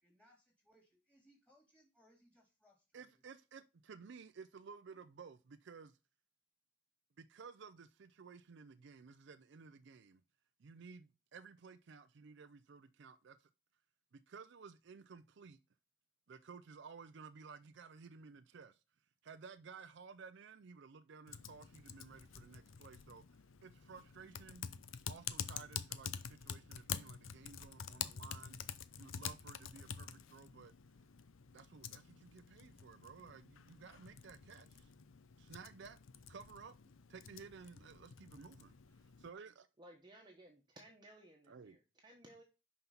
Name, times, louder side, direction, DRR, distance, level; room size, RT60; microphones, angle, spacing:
voice 1, 0.0-3.2, equal, 5° left, 3.3 m, -70 dB
voice 2, 2.9-6.0 7.2-10.2 10.6-13.5 14.1-15.6 16.3-18.8 19.2-24.6 25.1-28.6 29.0-30.7 31.5-34.9 35.4-36.0 36.3-36.7 37.1-38.8 39.2-39.7 41.5-41.8, right 5 dB, 60° right, 0.4 m, -55 dB
Typing, 21.3-39.3, left 8 dB, 90° left, 0.6 m, -48 dB
voice 3, 39.8-42.4, right 1 dB, 20° right, 1.2 m, -59 dB
5.7 x 5.4 x 5.7 m
head